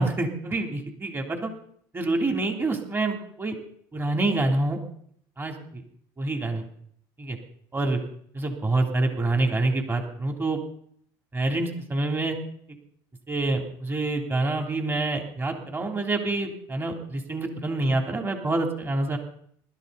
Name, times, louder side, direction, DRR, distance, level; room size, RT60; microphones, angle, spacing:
voice 1, 0.0-1.5 1.9-3.6 3.9-4.8 5.4-5.8 6.2-6.6 7.2-7.4 7.7-8.0 8.3-10.6 11.3-12.4 13.3-19.2, right 2 dB, 20° right, 3 dB, 3.4 m, -26 dB
25.0 x 13.0 x 4.2 m, 0.63 s
supercardioid pair, 100°, 11 cm